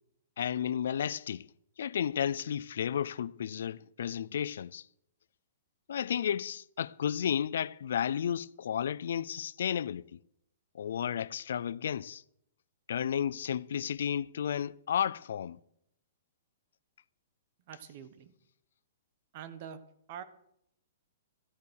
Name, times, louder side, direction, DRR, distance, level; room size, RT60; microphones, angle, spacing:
voice 1, 0.4-1.5 1.8-4.8 5.9-10.0 10.7-12.2 12.9-15.6, left 9 dB, 60° left, 0.4 m, -32 dB
voice 2, 17.7-18.3 19.3-19.8 20.1-20.2, right 9 dB, 35° right, 1.2 m, -44 dB
14.5 x 8.4 x 6.4 m
hypercardioid pair, 175°, 0 cm